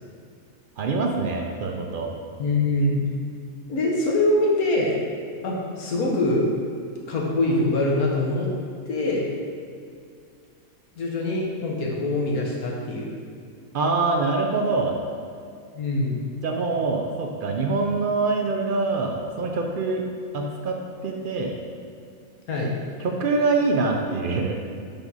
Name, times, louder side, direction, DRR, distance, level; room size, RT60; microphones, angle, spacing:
voice 1, 0.8-2.1 13.7-14.9 16.4-20.0 20.3-20.8 21.0-21.5 23.0-24.6, right 3 dB, 70° right, 2 dB, 0.5 m, -24 dB
voice 2, 2.4-3.0 3.7-4.9 5.4-6.4 7.1-8.5 8.9-9.2 10.9-13.1 15.7-16.2 22.5-22.7, left 2 dB, 85° left, -3 dB, 1.6 m, -23 dB
5.9 x 5.1 x 4.0 m, 2.3 s
omnidirectional pair, 1.5 m